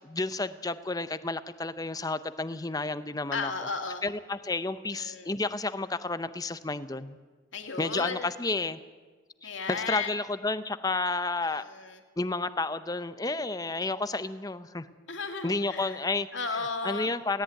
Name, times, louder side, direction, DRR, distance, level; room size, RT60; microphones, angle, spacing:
voice 1, 0.0-3.5 4.0-7.2 7.8-8.8 9.7-11.6 12.2-14.9 15.4-16.3 16.8-17.4, left 3 dB, 20° left, 12 dB, 0.7 m, -31 dB
voice 2, 3.3-4.0 4.9-5.3 7.5-8.3 9.4-10.1 11.4-12.0 15.1-17.1, left 4 dB, 85° left, 5 dB, 2.2 m, -35 dB
17.5 x 17.0 x 9.2 m, 1.4 s
head